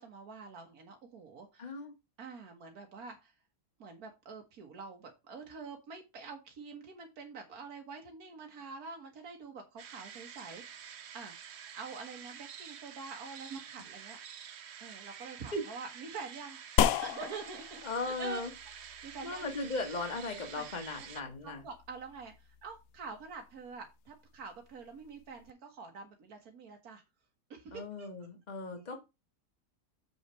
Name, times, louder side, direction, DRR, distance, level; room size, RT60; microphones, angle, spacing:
voice 1, 0.0-1.6 2.2-3.3 3.8-10.9 11.1-14.2 14.8-16.6 17.0-18.4 18.8-19.5 20.6-20.7 21.4-27.0 27.5-28.1 28.7-29.0, right 4 dB, 90° right, 4 dB, 1.8 m, -46 dB
voice 2, 1.6-1.9 15.5-15.6 17.8-18.5 19.2-21.6 27.7-29.0, left 3 dB, 30° left, 5 dB, 1.7 m, -37 dB
sound 1, 9.8-21.2, right 8 dB, 55° right, 0.9 m, -49 dB
sound 2, 16.8-25.5, left 9 dB, 75° left, 1.0 m, -37 dB
7.4 x 5.6 x 4.5 m, 0.24 s
omnidirectional pair, 1.5 m